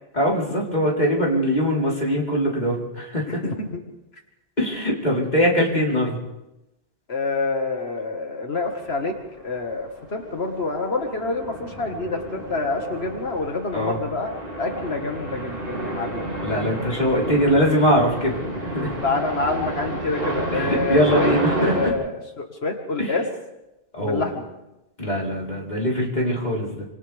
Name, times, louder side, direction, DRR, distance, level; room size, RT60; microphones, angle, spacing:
voice 1, 0.1-3.4 4.6-6.2 13.7-14.0 16.4-18.9 20.5-21.9 23.0-23.2 23.9-24.3 25.0-26.8, equal, 45° left, -3 dB, 4.3 m, -22 dB
voice 2, 3.4-3.8 7.1-9.1 9.4-14.3 14.6-16.3 19.0-23.3 24.0-24.3, left 3 dB, 75° left, 3 dB, 2.1 m, -27 dB
sound 1, 8.9-9.1 9.6-21.9, right 1 dB, 60° right, 3.8 m, -30 dB
28.0 x 26.5 x 3.6 m, 0.91 s
omnidirectional pair, 1.1 m